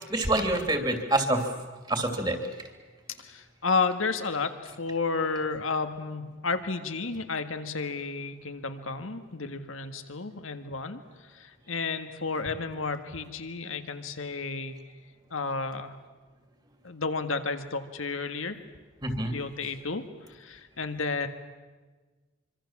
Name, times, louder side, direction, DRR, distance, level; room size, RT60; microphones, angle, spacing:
voice 1, 0.1-1.4 1.9-2.4 19.0-19.4, right 1 dB, 20° right, 6 dB, 2.7 m, -26 dB
voice 2, 3.2-14.8 15.3-16.0 16.8-18.6 19.2-21.3, left 4 dB, 90° left, 8 dB, 1.8 m, -32 dB
25.0 x 25.0 x 7.4 m, 1.3 s
head